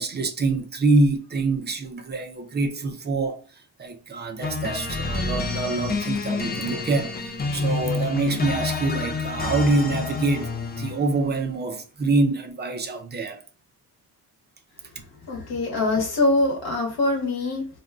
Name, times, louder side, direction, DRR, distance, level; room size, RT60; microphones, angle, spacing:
voice 1, 0.0-13.4 15.0-15.1, right 2 dB, 30° right, 0.5 m, -25 dB
sound 1, 4.4-11.1, left 3 dB, 25° left, 0.5 m, -28 dB
voice 2, 15.3-17.8, left 2 dB, 70° left, 1.1 m, -23 dB
2.6 x 2.2 x 3.4 m
cardioid pair, 125°, 38 cm